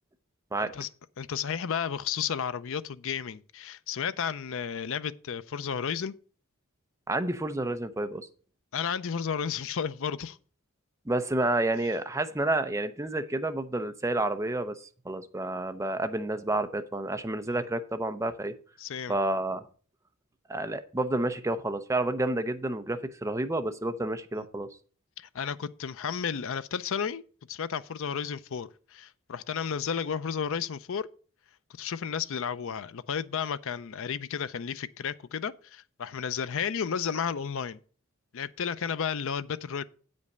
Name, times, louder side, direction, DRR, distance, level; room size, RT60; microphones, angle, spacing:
voice 1, 0.6-0.9 1.2-6.1 8.7-10.4 17.5-17.6 18.8-19.2 24.4-24.5 25.2-27.2 27.5-31.1 31.8-37.8 38.3-39.8, left 7 dB, 65° left, 0.5 m, -32 dB
voice 2, 7.1-8.3 11.1-18.5 19.1-19.7 20.5-24.7, right 2 dB, 15° right, 0.6 m, -30 dB
8.4 x 5.3 x 6.5 m
head